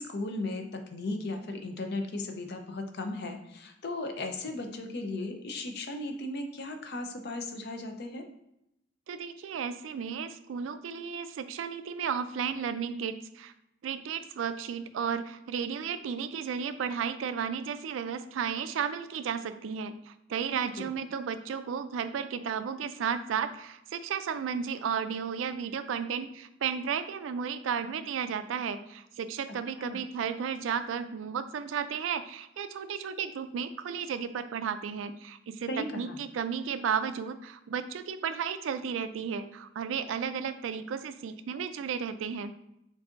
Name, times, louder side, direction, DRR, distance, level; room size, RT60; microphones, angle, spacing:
voice 1, 0.0-8.2 20.5-20.9 29.8-30.0 35.7-36.2, left 2 dB, 60° left, 5 dB, 0.6 m, -36 dB
voice 2, 9.1-13.5 13.8-42.5, right 7 dB, 85° right, 11 dB, 0.3 m, -33 dB
6.1 x 2.6 x 2.5 m, 0.82 s
head